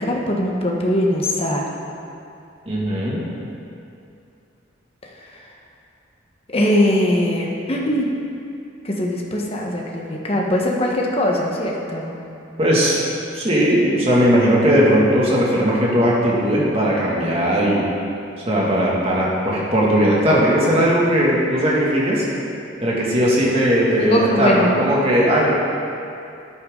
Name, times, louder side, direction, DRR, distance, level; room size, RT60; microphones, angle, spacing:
voice 1, 0.0-1.6 5.2-5.5 6.5-8.1 8.8-12.1 24.0-24.7, left 1 dB, 30° left, -1 dB, 1.3 m, -21 dB
voice 2, 2.7-3.2 12.6-13.1 13.3-17.8 18.5-22.2 22.8-25.5, equal, 30° right, -5 dB, 2.3 m, -18 dB
13.0 x 9.5 x 3.9 m, 2.6 s
head